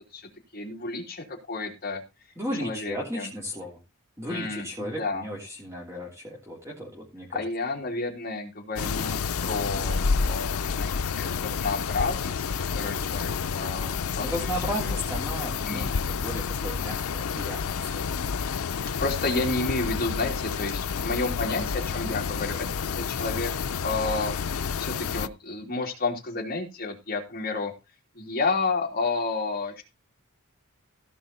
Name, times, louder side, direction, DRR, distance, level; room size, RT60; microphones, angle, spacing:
voice 1, 0.1-2.3 2.6-3.3 4.3-5.3 7.3-12.4 12.7-14.9 15.7-15.9 18.8-23.5 23.8-27.7 28.1-29.8, left 3 dB, 45° left, 0 dB, 3.1 m, -31 dB
voice 2, 2.4-3.8 4.2-7.4 14.2-18.2, equal, 15° right, -5 dB, 3.3 m, -35 dB
sound 1, 8.8-25.3, left 5 dB, 85° left, 0.5 m, -29 dB
16.0 x 5.4 x 4.3 m, 0.27 s
head